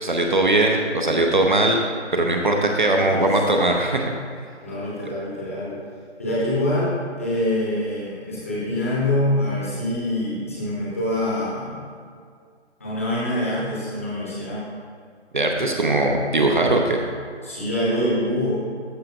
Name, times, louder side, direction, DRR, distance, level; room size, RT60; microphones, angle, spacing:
voice 1, 0.0-1.8 2.1-4.1 15.3-17.0, right 2 dB, 40° right, 2 dB, 0.7 m, -20 dB
voice 2, 3.0-3.7 4.6-5.8 6.2-11.8 12.8-14.6 17.4-18.5, left 1 dB, 10° left, -8 dB, 0.8 m, -25 dB
13.5 x 5.6 x 2.6 m, 2.1 s
figure-of-eight pair, 155°, 36 cm